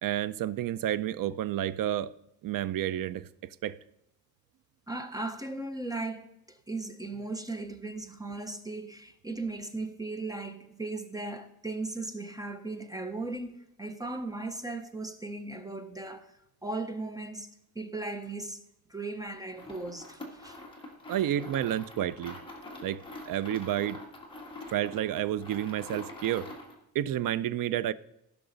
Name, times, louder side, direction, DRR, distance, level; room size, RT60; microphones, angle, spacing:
voice 1, 0.0-2.1 2.4-3.3 3.6-3.8 21.1-22.4 22.8-23.0 23.3-24.0 24.7-26.5 26.9-27.9, right 11 dB, 65° right, 0.5 m, -30 dB
voice 2, 4.9-16.3 16.6-17.5 17.7-18.6 18.9-20.6 21.4-21.5, right 2 dB, 10° right, 0.6 m, -37 dB
sound 1, 19.5-26.8, left 1 dB, 15° left, 1.7 m, -45 dB
15.5 x 5.9 x 3.9 m
wide cardioid pair, 170°, 36 cm